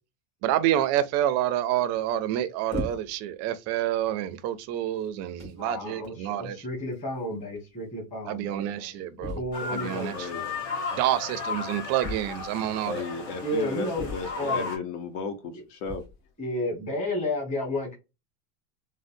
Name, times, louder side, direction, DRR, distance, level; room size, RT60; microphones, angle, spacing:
voice 1, 0.4-6.6 8.3-9.4 9.7-10.3 10.9-13.0, right 12 dB, 35° right, 0.4 m, -28 dB
sound 1, 2.7-3.3 4.1-4.2 5.0-5.1 5.4-5.7 6.9-7.0 7.2-7.3 7.6-7.7 9.2-9.7 12.0-12.7 14.0-14.6 15.8-16.3, left 2 dB, 35° left, 1.6 m, -37 dB
voice 2, 5.5-10.2 13.4-14.1 14.4-14.8 15.5-15.6 16.4-17.9, left 1 dB, 15° left, 1.3 m, -32 dB
sound 2, 9.5-14.8, left 4 dB, 60° left, 1.7 m, -35 dB
voice 3, 10.1-10.5 12.9-16.0, left 5 dB, 80° left, 0.9 m, -34 dB
3.8 x 2.0 x 2.5 m
supercardioid pair, 130°, 47 cm